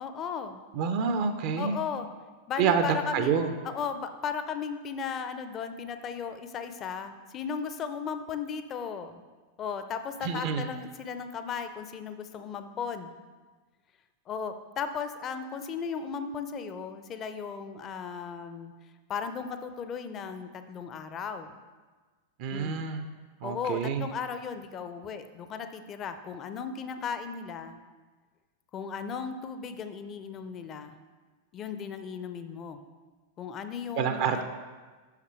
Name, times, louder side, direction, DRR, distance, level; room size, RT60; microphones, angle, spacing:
voice 1, 0.0-0.6 1.6-2.1 2.5-9.2 9.6-13.1 14.3-18.7 19.1-21.6 22.5-22.9 23.4-27.8 28.7-31.0 31.5-32.8 33.4-34.4, left 6 dB, 30° left, 9 dB, 0.5 m, -36 dB
voice 2, 0.7-1.8 2.6-2.8 3.1-3.5 10.2-10.7 22.4-23.0 23.4-24.1 34.0-34.4, right 6 dB, 45° right, 8 dB, 0.5 m, -27 dB
6.0 x 5.8 x 4.4 m, 1.4 s
figure-of-eight pair, 90°, 0 cm